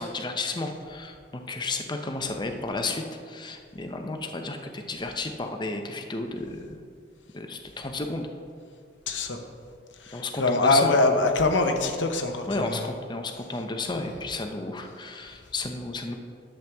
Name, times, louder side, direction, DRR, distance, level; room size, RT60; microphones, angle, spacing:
voice 1, 0.0-6.8 7.3-8.3 10.1-10.9 12.5-16.2, left 3 dB, 25° left, 4 dB, 0.7 m, -32 dB
voice 2, 9.1-9.4 10.0-12.8, left 2 dB, 85° left, 5 dB, 0.9 m, -23 dB
10.5 x 7.6 x 3.5 m, 2.2 s
head